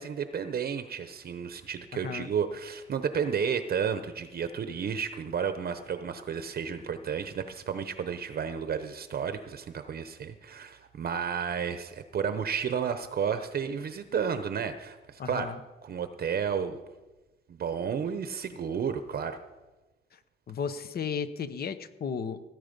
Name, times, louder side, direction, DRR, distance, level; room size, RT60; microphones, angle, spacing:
voice 1, 0.0-15.5 15.8-16.8 17.5-19.4, right 7 dB, 50° right, 9 dB, 0.8 m, -32 dB
voice 2, 15.2-15.6 20.5-22.4, left 6 dB, 50° left, 12 dB, 1.0 m, -34 dB
17.0 x 9.4 x 5.3 m, 1.1 s
cardioid pair, 90°, 20 cm